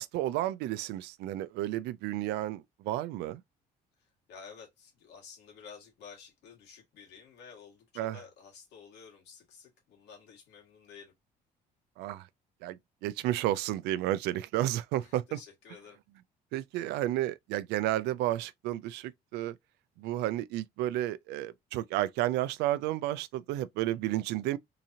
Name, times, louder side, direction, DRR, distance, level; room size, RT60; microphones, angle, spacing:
voice 1, 0.0-3.4 8.0-8.2 12.0-12.3 12.6-12.8 13.0-15.4 16.5-19.6 20.0-24.6, right 14 dB, 85° right, 0.4 m, -32 dB
voice 2, 4.0-11.1 15.0-16.0 23.9-24.1, left 6 dB, 80° left, 2.0 m, -52 dB
3.7 x 2.8 x 2.7 m
cardioid pair, 110°, 17 cm